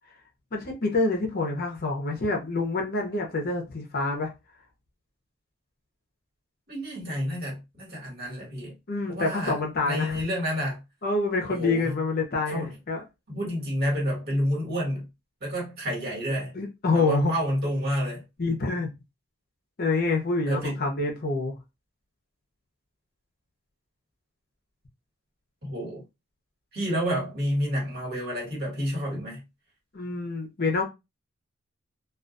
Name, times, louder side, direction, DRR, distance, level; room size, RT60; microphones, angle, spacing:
voice 1, 0.5-4.3 8.9-10.2 11.0-13.0 16.5-17.3 18.4-18.9 19.8-21.6 29.9-30.8, left 3 dB, 45° left, 0.7 m, -27 dB
voice 2, 6.7-8.7 9.1-10.8 11.5-11.9 12.5-12.7 13.3-15.1 15.4-16.5 16.9-18.2 20.5-20.8 25.6-26.0 26.7-29.4, equal, 45° right, 1.5 m, -29 dB
2.4 x 2.3 x 2.5 m
head